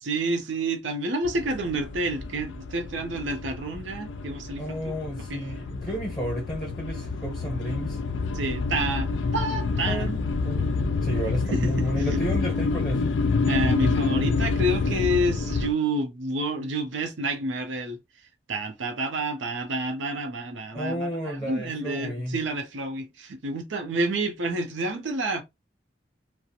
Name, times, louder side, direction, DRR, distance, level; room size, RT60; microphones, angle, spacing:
voice 1, 0.0-4.8 5.3-5.5 8.3-10.1 11.5-12.4 13.5-18.0 18.5-25.4, right 1 dB, 85° right, 0.6 m, -29 dB
sound 1, 1.2-15.7, left 4 dB, 85° left, 0.4 m, -28 dB
voice 2, 4.6-8.0 9.8-10.7 11.0-13.0 20.7-22.4, equal, 20° left, 0.7 m, -32 dB
2.4 x 2.1 x 2.8 m
head